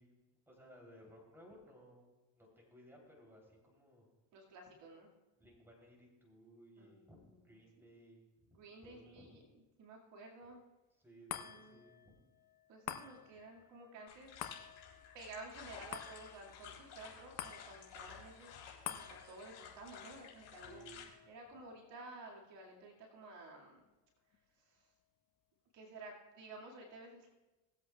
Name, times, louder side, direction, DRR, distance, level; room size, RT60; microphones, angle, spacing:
voice 1, 0.0-2.1 2.3-4.1 5.4-9.4 11.0-12.1 20.5-21.0, right 1 dB, 5° right, -2 dB, 3.4 m, -60 dB
voice 2, 4.3-5.2 6.8-7.6 8.5-9.4 9.8-10.6 11.4-11.8 12.7-14.3 15.1-20.9 21.3-23.8 24.3-24.9 25.7-27.3, right 2 dB, 60° right, -1 dB, 2.3 m, -53 dB
sound 1, 11.3-23.9 24.3-24.4, left 10 dB, 50° left, 1.0 m, -51 dB
sound 2, 14.1-21.0, left 7 dB, 65° left, 3.5 m, -54 dB
20.5 x 8.1 x 2.4 m, 1.1 s
supercardioid pair, 95°, 47 cm